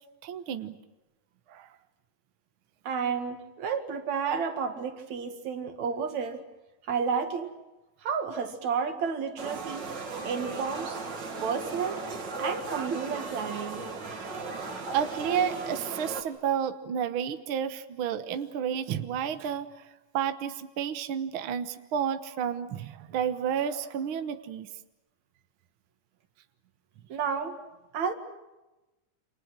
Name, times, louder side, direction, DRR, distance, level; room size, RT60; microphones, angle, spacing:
voice 1, 0.2-0.8 1.5-1.7 14.5-19.9 20.1-24.7, right 8 dB, 70° right, 9 dB, 1.2 m, -31 dB
voice 2, 2.8-6.4 6.9-7.5 8.0-9.9 10.2-11.0 11.4-12.0 12.4-13.9 27.1-27.6 27.9-28.1, right 6 dB, 55° right, 7 dB, 3.1 m, -31 dB
sound 1, 9.4-16.2, right 3 dB, 35° right, 2.3 m, -36 dB
29.0 x 27.0 x 6.2 m, 1.1 s
omnidirectional pair, 4.0 m